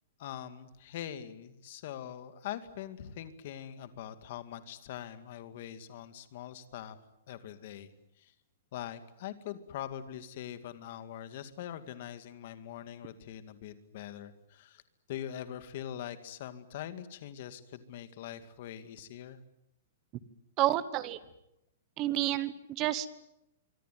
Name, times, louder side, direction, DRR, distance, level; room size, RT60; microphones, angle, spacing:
voice 1, 0.2-7.0 7.3-7.9 8.2-8.3 8.7-14.8 15.1-19.4, left 10 dB, 40° left, 11 dB, 2.1 m, -43 dB
voice 2, 20.6-21.2 22.0-23.1, right 14 dB, 20° right, 16 dB, 1.1 m, -30 dB
25.5 x 24.5 x 9.2 m, 0.83 s
hypercardioid pair, 180°, 0 cm